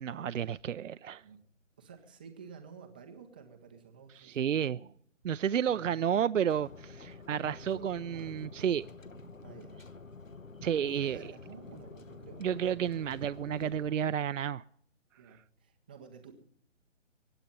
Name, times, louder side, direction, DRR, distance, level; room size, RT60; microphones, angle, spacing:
voice 1, 0.0-1.2 4.2-4.8 5.2-8.9 10.6-11.2 12.4-14.6, right 8 dB, 75° right, 14 dB, 0.5 m, -31 dB
voice 2, 1.8-4.9 5.7-6.2 7.5-8.3 9.1-9.8 10.8-12.5 15.2-16.4, right 6 dB, 10° right, 4 dB, 0.5 m, -51 dB
sound 1, 6.5-13.9, left 4 dB, 90° left, 1.2 m, -49 dB
23.5 x 9.0 x 5.2 m, 0.64 s
figure-of-eight pair, 145°, 38 cm